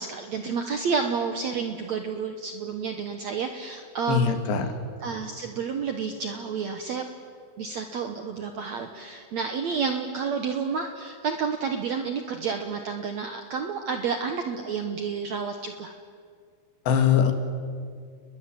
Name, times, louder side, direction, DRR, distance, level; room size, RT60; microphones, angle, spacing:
voice 1, 0.0-4.4 5.0-7.0 7.6-15.9, right 5 dB, 70° right, 5 dB, 1.7 m, -30 dB
voice 2, 4.1-4.7 16.9-17.3, left 7 dB, 90° left, 7 dB, 4.1 m, -21 dB
29.5 x 21.0 x 7.8 m, 2.1 s
omnidirectional pair, 4.8 m